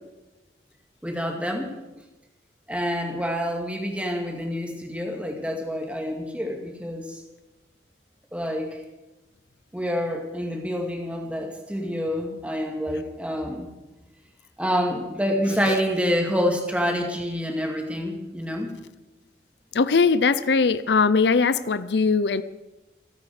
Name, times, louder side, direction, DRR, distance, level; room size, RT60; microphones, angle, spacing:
voice 1, 1.0-1.7 2.7-7.2 8.3-8.8 9.7-13.7 14.6-18.8, equal, 5° right, 2 dB, 2.3 m, -27 dB
voice 2, 19.7-22.4, left 4 dB, 75° left, 15 dB, 0.5 m, -20 dB
27.0 x 9.3 x 4.9 m, 1.1 s
head